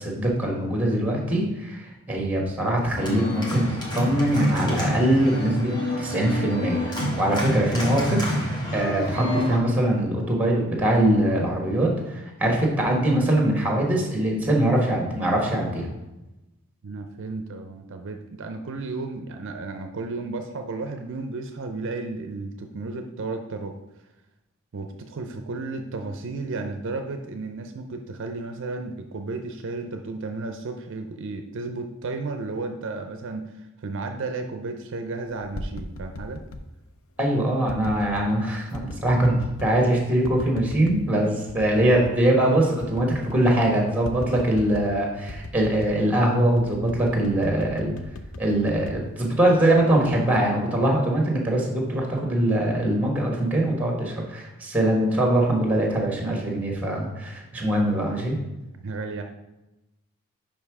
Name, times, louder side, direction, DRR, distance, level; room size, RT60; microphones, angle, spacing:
voice 1, 0.0-5.7 6.0-8.4 8.7-15.9 37.2-47.9 48.4-58.4, right 1 dB, 5° right, 0 dB, 1.3 m, -22 dB
Organ, 3.0-9.6, left 1 dB, 20° left, 1.3 m, -28 dB
voice 2, 16.8-23.8 24.7-36.4 58.8-59.2, right 3 dB, 55° right, 5 dB, 0.5 m, -33 dB
sound 1, 35.3-36.7 37.7-38.3 38.7-39.8 40.2-41.0 41.5-42.2 42.5-42.6 42.8-43.6 44.1-45.0 45.3-46.0 46.6-49.7 50.1-50.5, left 2 dB, 65° left, 0.5 m, -38 dB
5.4 x 5.2 x 4.7 m, 1.0 s
head